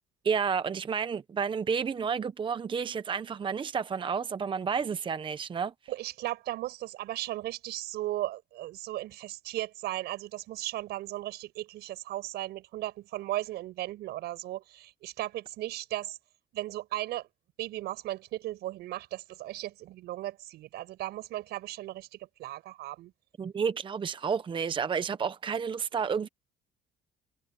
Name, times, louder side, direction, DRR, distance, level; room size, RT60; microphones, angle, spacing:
voice 1, 0.2-5.7 23.4-26.3, right 6 dB, 30° right, 0.8 m, -30 dB
voice 2, 5.9-16.2 16.5-17.3 17.6-23.1, right 15 dB, 80° right, 5.5 m, -36 dB
cardioid pair, 110°, 17 cm